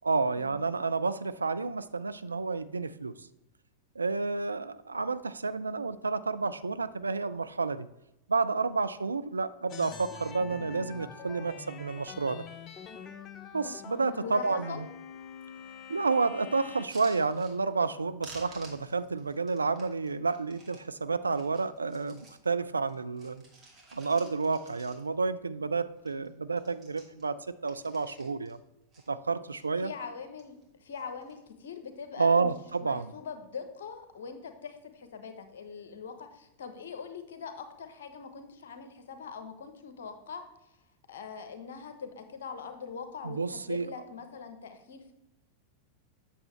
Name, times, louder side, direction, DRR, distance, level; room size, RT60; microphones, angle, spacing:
voice 1, 0.0-3.3 4.0-7.9 8.3-12.4 13.5-14.9 15.9-23.4 23.9-28.6 29.1-29.9 32.2-33.1 43.2-43.9, right 4 dB, 75° right, 13 dB, 0.3 m, -30 dB
sound 1, 9.7-16.9, left 6 dB, 35° left, 0.6 m, -45 dB
voice 2, 14.2-14.9 29.8-32.5 32.8-40.7 41.1-45.1, left 6 dB, 60° left, 7 dB, 1.0 m, -42 dB
sound 2, 16.8-18.0 18.2-20.8 21.3-22.5 22.8-25.3 25.6-25.7 26.0-26.3 26.5-28.6 28.9-29.6 30.2-30.7 30.9-31.5 32.3-32.6, right 2 dB, 25° right, 2.1 m, -54 dB
8.3 x 6.7 x 3.2 m, 0.90 s
figure-of-eight pair, 90°, 0 cm